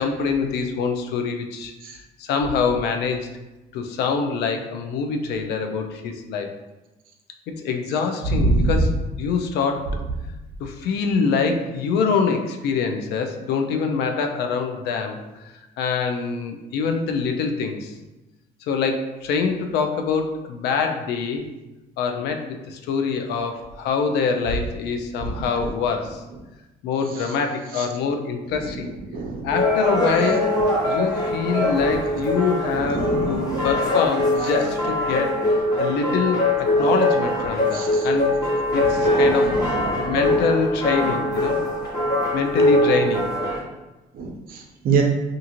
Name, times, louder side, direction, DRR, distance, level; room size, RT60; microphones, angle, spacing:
voice 1, 0.0-3.3 3.7-6.5 7.5-10.0 10.6-15.4 15.8-17.9 18.6-21.5 22.0-26.2 26.8-28.9 29.4-30.5 30.8-38.3 38.7-41.6 42.3-43.3, left 5 dB, 80° left, 5 dB, 0.4 m, -25 dB
voice 2, 8.3-8.7 29.1-29.5 32.8-33.7 37.7-38.0 39.0-39.1 39.6-39.7 39.9-40.2 44.2-45.0, right 4 dB, 60° right, 3 dB, 0.5 m, -24 dB
sound 1, 29.5-43.6, left 1 dB, 20° left, 0.9 m, -22 dB
2.5 x 2.5 x 2.8 m, 1.1 s
cardioid pair, 110°, 17 cm